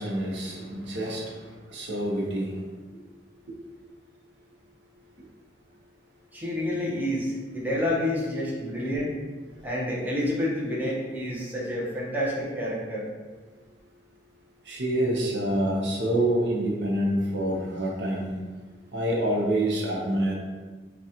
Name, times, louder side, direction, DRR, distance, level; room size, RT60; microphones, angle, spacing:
voice 1, 0.0-2.6 3.5-3.6 14.6-18.4 18.9-20.4, right 1 dB, 75° right, -2 dB, 0.8 m, -27 dB
voice 2, 6.3-9.1 9.6-13.0, left 1 dB, 10° right, -6 dB, 0.8 m, -29 dB
5.9 x 2.3 x 2.8 m, 1.4 s
head